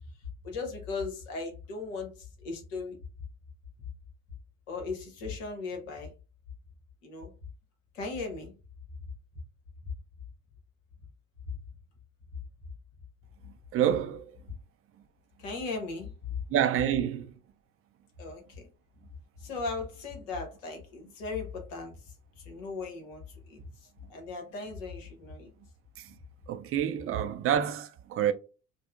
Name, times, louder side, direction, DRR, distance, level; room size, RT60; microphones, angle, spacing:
voice 1, 0.4-3.0 4.7-6.1 7.0-7.3 7.9-8.5 15.4-16.3 18.2-18.7 19.4-21.9 22.4-23.6 24.1-25.5, left 4 dB, 70° left, 1.1 m, -37 dB
voice 2, 13.4-14.3 16.5-17.3 26.0-26.2 26.5-28.3, right 10 dB, 35° right, 0.4 m, -28 dB
5.1 x 2.0 x 2.4 m
figure-of-eight pair, 55°, 40 cm